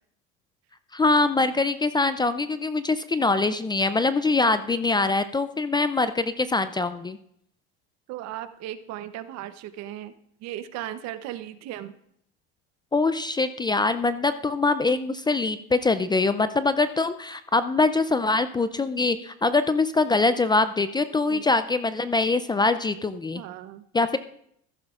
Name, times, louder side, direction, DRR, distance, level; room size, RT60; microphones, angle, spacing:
voice 1, 0.9-7.2 12.9-23.4 23.9-24.2, left 3 dB, 15° left, 12 dB, 0.4 m, -23 dB
voice 2, 8.1-10.1 10.4-12.0 21.3-21.4 23.3-23.8, right 12 dB, 60° right, 12 dB, 0.8 m, -36 dB
14.0 x 11.5 x 2.4 m, 0.69 s
supercardioid pair, 100°, 30 cm